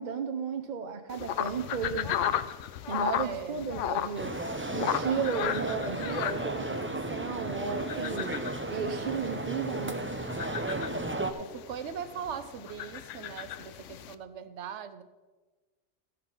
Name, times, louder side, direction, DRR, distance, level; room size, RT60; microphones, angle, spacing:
voice 1, 0.0-2.1 2.9-4.4 4.7-8.3 8.7-10.0, right 6 dB, 45° right, 5 dB, 0.7 m, -34 dB
sound 1, 1.1-14.2, left 10 dB, 85° left, 0.9 m, -36 dB
voice 2, 1.4-1.8 3.2-3.7 10.7-11.0 11.4-15.0, right 8 dB, 75° right, 11 dB, 1.1 m, -41 dB
sound 2, 4.1-11.3, right 2 dB, 20° right, 0.3 m, -34 dB
14.0 x 6.8 x 5.4 m, 1.3 s
omnidirectional pair, 1.2 m